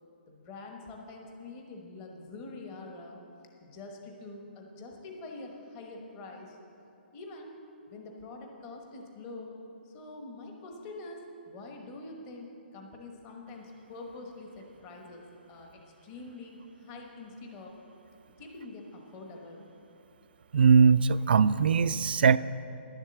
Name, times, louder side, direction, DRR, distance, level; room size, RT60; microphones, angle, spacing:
voice 1, 0.3-3.2 3.6-6.6 7.1-7.5 7.9-9.5 9.8-17.7 18.4-19.7, left 2 dB, 20° left, 1 dB, 1.1 m, -45 dB
voice 2, 20.5-22.4, right 5 dB, 60° right, 15 dB, 0.3 m, -21 dB
11.0 x 7.3 x 7.6 m, 2.8 s
hypercardioid pair, 170°, 6 cm